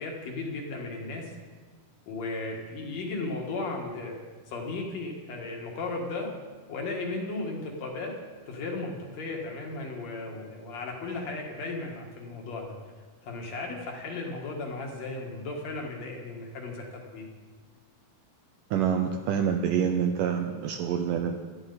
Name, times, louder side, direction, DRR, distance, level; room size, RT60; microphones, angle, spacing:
voice 1, 0.0-1.3 2.1-4.2 4.5-6.3 6.7-8.1 8.5-12.7 13.2-17.3, left 3 dB, 55° left, 1 dB, 2.5 m, -35 dB
voice 2, 18.7-21.4, right 8 dB, 75° right, 5 dB, 2.0 m, -27 dB
16.5 x 12.5 x 4.1 m, 1.5 s
omnidirectional pair, 4.4 m